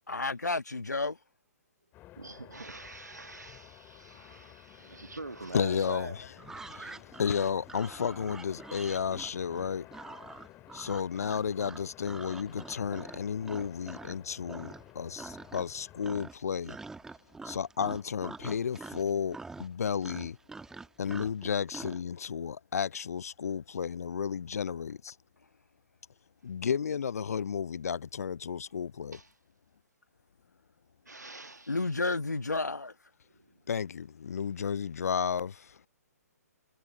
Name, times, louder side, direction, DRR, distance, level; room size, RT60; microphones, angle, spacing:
voice 1, 0.1-1.2 31.7-32.9, left 3 dB, 85° left, 1.6 m, -31 dB
sound 1, 1.9-16.1, left 16 dB, 20° left, 2.1 m, -54 dB
voice 2, 2.1-6.2 6.7-6.8 29.1-29.3 31.0-32.0 33.3-33.6, right 2 dB, 85° right, 1.7 m, -45 dB
voice 3, 5.5-6.1 6.6-9.9 10.7-16.8 17.4-20.4 21.0-25.2 26.4-29.2 33.7-35.8, left 7 dB, 65° left, 0.6 m, -33 dB
sound 2, 6.4-14.2 14.5-14.9 15.2-22.0, right 3 dB, 5° right, 1.2 m, -46 dB
figure-of-eight pair, 130°, 9 cm